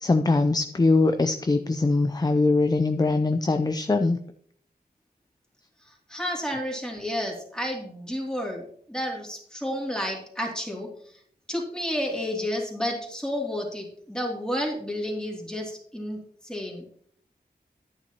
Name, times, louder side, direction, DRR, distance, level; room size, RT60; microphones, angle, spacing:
voice 1, 0.0-4.2, left 3 dB, 25° left, 8 dB, 0.5 m, -22 dB
voice 2, 6.1-10.9 11.5-16.2 16.4-16.8, equal, 5° left, -1 dB, 2.7 m, -31 dB
10.5 x 9.0 x 2.9 m, 0.64 s
wide cardioid pair, 70°, 17 cm